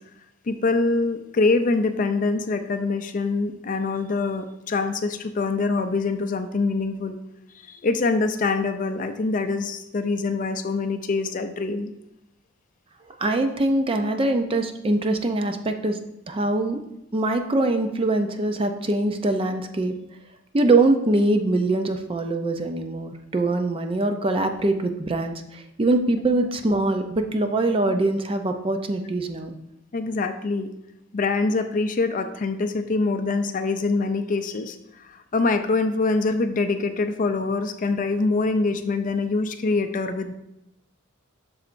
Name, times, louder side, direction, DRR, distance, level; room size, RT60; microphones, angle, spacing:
voice 1, 0.5-7.2 7.7-11.9 29.9-30.7 31.1-40.3, left 3 dB, 40° left, 8 dB, 0.4 m, -24 dB
voice 2, 13.2-16.0 16.3-16.8 17.1-19.9 20.5-29.5, right 2 dB, 25° right, 6 dB, 0.4 m, -23 dB
7.4 x 6.3 x 2.5 m, 0.85 s
head